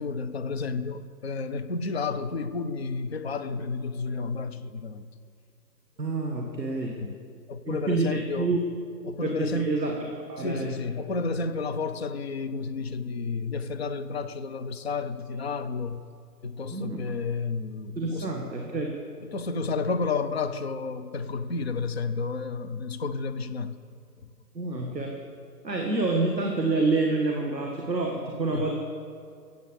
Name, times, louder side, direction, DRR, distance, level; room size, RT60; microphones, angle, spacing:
voice 1, 0.0-5.1 7.0-7.2 7.5-8.6 9.0-9.8 10.4-16.0 16.4-18.4 19.2-23.8 28.5-28.7, left 4 dB, 40° left, 10 dB, 0.7 m, -31 dB
voice 2, 6.0-7.0 7.7-8.6 9.2-9.9 10.3-10.7 16.7-17.1 18.0-19.0 24.5-25.2 25.6-28.8, right 3 dB, ahead, -13 dB, 0.6 m, -28 dB
16.5 x 8.2 x 6.8 m, 2.2 s
figure-of-eight pair, 140°, 49 cm